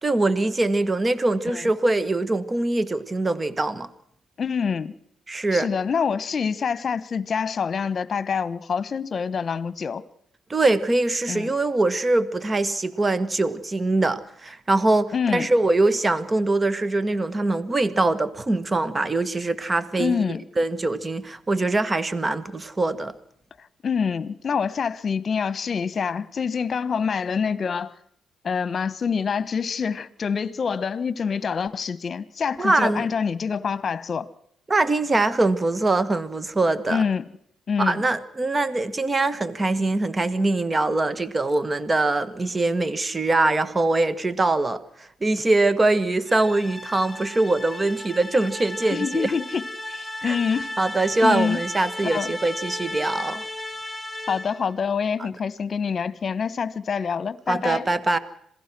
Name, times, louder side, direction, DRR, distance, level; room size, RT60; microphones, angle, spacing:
voice 1, 0.0-3.9 5.3-5.7 10.5-20.2 20.6-23.1 32.6-33.1 34.7-37.0 37.8-49.3 50.2-50.3 50.8-53.4 57.5-58.2, right 2 dB, 25° right, 1.5 m, -23 dB
voice 2, 4.4-4.9 5.5-10.1 11.3-11.5 15.1-15.5 20.0-20.4 23.8-27.9 28.4-34.3 36.9-37.2 37.7-38.1 48.9-50.7 51.2-51.6 52.0-52.3 54.3-57.9, left 6 dB, 45° left, 1.3 m, -26 dB
sound 1, 46.2-54.7, left 1 dB, 5° left, 1.9 m, -35 dB
26.5 x 17.5 x 6.2 m
cardioid pair, 90°, 0 cm